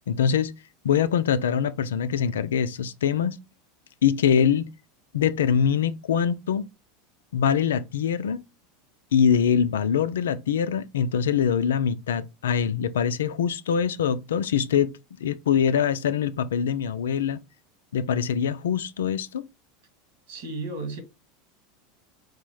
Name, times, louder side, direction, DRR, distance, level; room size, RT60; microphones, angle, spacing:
voice 1, 0.1-0.5 0.8-3.4 4.0-4.7 5.1-6.6 7.3-8.4 9.1-14.9 15.2-17.4 17.9-19.5, left 8 dB, 85° left, 0.4 m, -23 dB
voice 2, 20.3-21.0, right 3 dB, 75° right, 2.0 m, -33 dB
4.6 x 2.1 x 4.6 m
hypercardioid pair, 95°, 0 cm